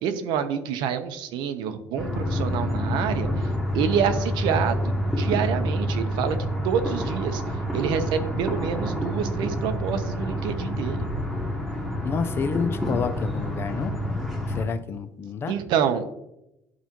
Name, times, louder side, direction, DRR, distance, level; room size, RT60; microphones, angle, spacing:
voice 1, 0.0-3.5 3.7-6.4 6.6-7.4 7.7-11.1 15.5-16.1, right 8 dB, 75° right, 9 dB, 0.8 m, -27 dB
sound 1, 2.0-14.7, equal, ahead, 1.2 m, -28 dB
voice 2, 12.0-13.9 14.5-15.5, left 5 dB, 30° left, 11 dB, 0.4 m, -29 dB
11.0 x 4.2 x 3.0 m, 0.84 s
cardioid pair, 170°, 8 cm